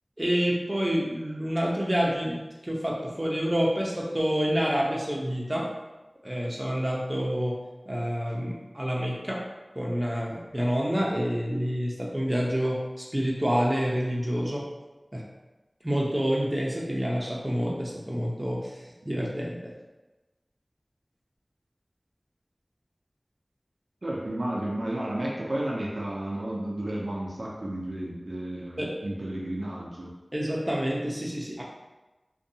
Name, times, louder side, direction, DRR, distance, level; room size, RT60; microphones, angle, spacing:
voice 1, 0.2-5.7 6.2-7.6 7.9-9.4 9.7-14.7 15.1-15.3 15.8-18.7 19.1-19.7 28.8-28.9 30.3-31.6, equal, 25° right, -3 dB, 0.6 m, -28 dB
voice 2, 24.0-30.1, right 1 dB, 75° right, -4 dB, 0.4 m, -32 dB
2.6 x 2.2 x 2.7 m, 1.1 s
wide cardioid pair, 45°, 0 cm